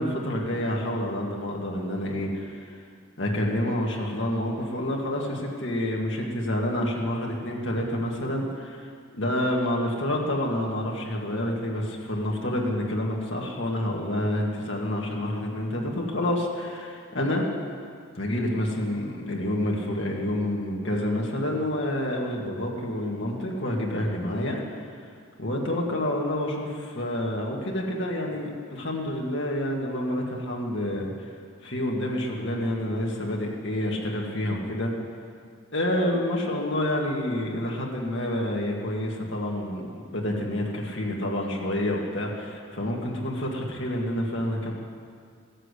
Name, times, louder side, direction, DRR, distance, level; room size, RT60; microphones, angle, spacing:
voice 1, 0.0-2.8 3.2-8.9 9.2-17.4 18.2-24.8 25.4-31.3 31.6-34.9 35.7-44.7, left 1 dB, 60° left, -1 dB, 2.1 m, -28 dB
15.0 x 7.7 x 8.3 m, 2.2 s
head